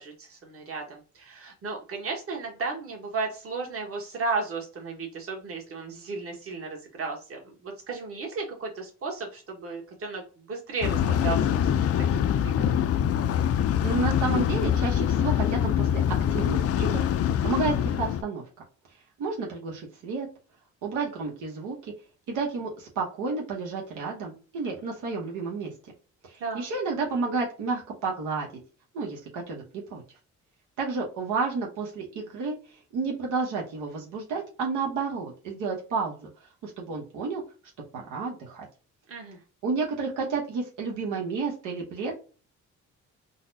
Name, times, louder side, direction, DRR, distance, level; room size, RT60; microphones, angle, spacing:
voice 1, 0.0-11.7 12.0-12.6 26.4-26.7 39.1-39.4, right 4 dB, 50° right, 1 dB, 1.3 m, -34 dB
sound 1, 10.8-18.2, left 9 dB, 50° left, 0.4 m, -24 dB
voice 2, 13.8-16.0 16.3-17.0 17.4-18.4 19.2-20.3 20.8-21.9 22.3-25.7 26.3-28.5 28.9-30.0 30.8-32.6 32.9-36.3 36.6-37.4 37.9-38.7 39.6-42.1, right 4 dB, 85° right, -1 dB, 1.0 m, -31 dB
4.0 x 2.1 x 2.6 m, 0.36 s
cardioid pair, 90°, 30 cm